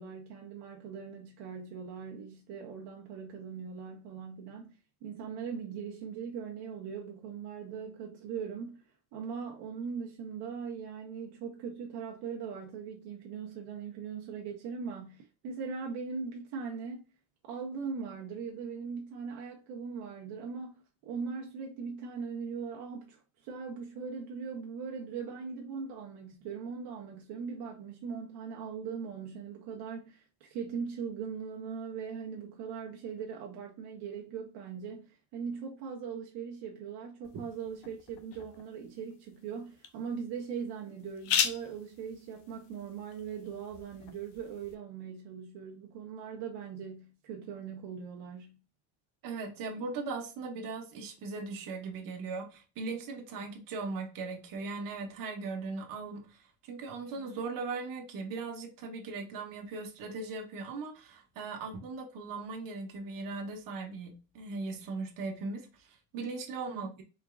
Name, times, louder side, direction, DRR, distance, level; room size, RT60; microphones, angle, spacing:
voice 1, 0.0-8.8 9.1-17.0 17.4-48.6 66.7-66.9, right 6 dB, 70° right, 1.1 m, -40 dB
sound 1, 37.2-44.8, left 8 dB, 75° left, 0.9 m, -38 dB
voice 2, 49.2-67.0, right 4 dB, 55° right, 1.4 m, -39 dB
4.6 x 3.6 x 2.4 m
cardioid pair, 140°, 41 cm